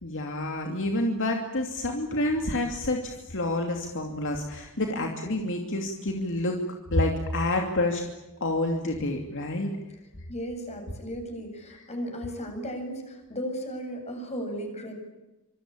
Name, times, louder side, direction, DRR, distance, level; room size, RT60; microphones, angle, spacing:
voice 1, 0.0-6.6 6.9-8.0 8.4-9.7, left 1 dB, 60° left, 3 dB, 2.7 m, -28 dB
voice 2, 10.3-14.9, equal, 30° left, 4 dB, 7.8 m, -35 dB
26.0 x 24.0 x 8.7 m, 1.0 s
head